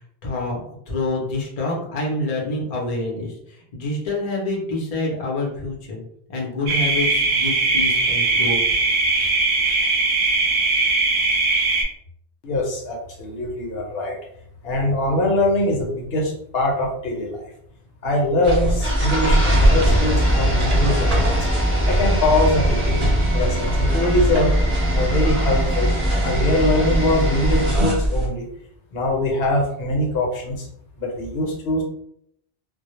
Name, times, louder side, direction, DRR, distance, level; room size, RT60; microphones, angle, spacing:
voice 1, 0.2-0.6 0.9-6.0 6.3-8.6, left 2 dB, 45° left, -1 dB, 0.6 m, -27 dB
sound 1, 6.7-11.8, right 3 dB, 85° right, 0.9 m, -20 dB
voice 2, 12.4-14.2 14.6-17.4 18.0-21.4 21.9-23.0 23.3-24.5 24.9-25.9 26.2-28.5 28.9-30.7 31.0-31.8, left 1 dB, 70° left, -1 dB, 0.9 m, -22 dB
sound 2, 18.4-28.3, equal, 55° right, 0.8 m, -21 dB
sound 3, 18.8-27.7, right 1 dB, 15° right, 0.4 m, -24 dB
2.1 x 2.0 x 2.9 m, 0.71 s
omnidirectional pair, 1.1 m